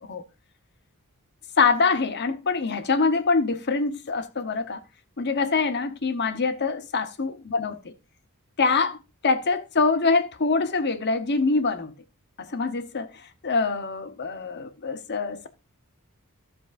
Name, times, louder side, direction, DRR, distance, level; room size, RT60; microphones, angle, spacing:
voice 1, 1.6-4.8 5.2-7.8 8.6-11.9 12.4-13.1 13.4-15.5, left 4 dB, 50° left, 0.9 m, -24 dB
13.5 x 7.7 x 2.5 m
head